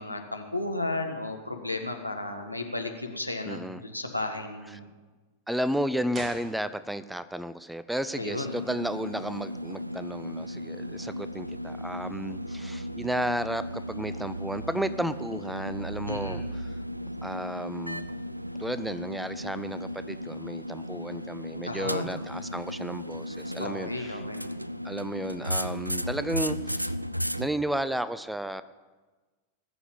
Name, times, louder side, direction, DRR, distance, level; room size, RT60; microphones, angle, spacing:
voice 1, 0.0-4.8 8.1-8.5 16.1-16.4 21.6-22.1 23.6-24.5, left 2 dB, 90° left, 3 dB, 1.7 m, -33 dB
voice 2, 3.4-3.8 5.5-16.7 17.2-18.1 18.6-24.2 24.8-26.9 27.4-28.6, right 1 dB, 5° right, 14 dB, 0.6 m, -33 dB
sound 1, 6.1-7.2 7.5-7.6, right 3 dB, 25° right, 2.2 m, -44 dB
sound 2, 8.4-27.5, equal, 90° right, 0.4 m, -35 dB
19.5 x 7.1 x 8.9 m, 1.3 s
figure-of-eight pair, 90°, 0 cm